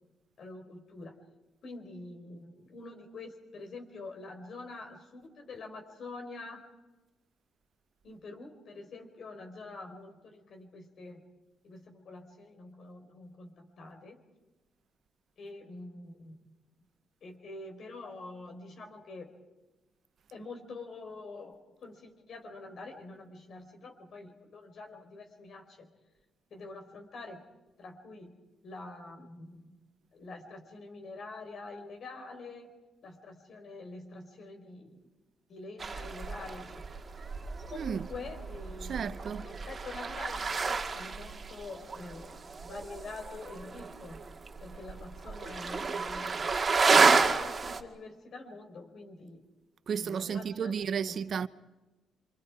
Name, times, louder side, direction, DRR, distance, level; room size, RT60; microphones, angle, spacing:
voice 1, 0.4-1.2 1.6-6.6 8.0-11.3 11.6-14.2 15.4-16.5 17.2-19.4 20.3-25.9 26.5-27.5 27.8-29.8 30.1-32.7 33.0-35.1 35.5-36.8 37.1-37.4 37.7-44.2 44.6-46.5 46.9-49.4 50.0-51.2, left 3 dB, 60° left, 4.6 m, -46 dB
sound 1, 35.8-47.8, right 4 dB, 30° right, 2.0 m, -31 dB
voice 2, 37.7-38.1 38.9-39.5 49.9-51.5, right 7 dB, 55° right, 0.8 m, -33 dB
28.5 x 26.5 x 4.9 m
cardioid pair, 90°, 0 cm